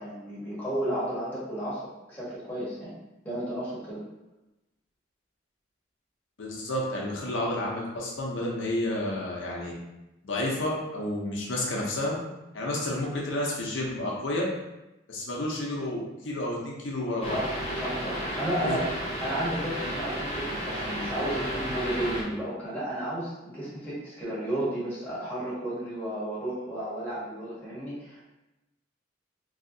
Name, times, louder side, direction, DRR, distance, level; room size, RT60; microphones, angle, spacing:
voice 1, 0.0-1.8 2.1-2.9 3.2-4.0 17.3-18.9 19.2-28.2, right 1 dB, 10° left, -8 dB, 1.0 m, -33 dB
voice 2, 6.4-9.7 10.2-12.2 12.5-14.5 15.1-17.4 18.6-18.8, left 1 dB, 80° left, -3 dB, 0.7 m, -30 dB
sound 1, 17.2-22.2, equal, 30° left, 0.7 m, -33 dB
3.1 x 2.7 x 2.6 m, 0.96 s
head